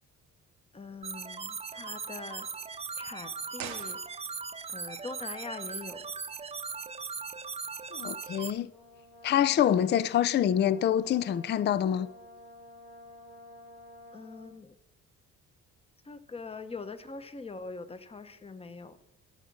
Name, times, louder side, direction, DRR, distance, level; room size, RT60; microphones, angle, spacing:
voice 1, 0.7-2.5 3.0-4.2 4.7-6.0 14.1-14.7 16.1-19.0, left 4 dB, 20° left, 0.8 m, -43 dB
sound 1, 1.0-8.5, right 5 dB, 20° right, 0.5 m, -39 dB
sound 2, 3.5-4.6 4.9-5.0, right 9 dB, 70° right, 1.0 m, -43 dB
voice 2, 7.9-8.7 9.2-12.1, left 10 dB, 35° left, 0.4 m, -26 dB
Brass instrument, 8.7-14.5, left 1 dB, 80° left, 3.0 m, -51 dB
12.5 x 5.0 x 7.2 m
cardioid pair, 90°, 30 cm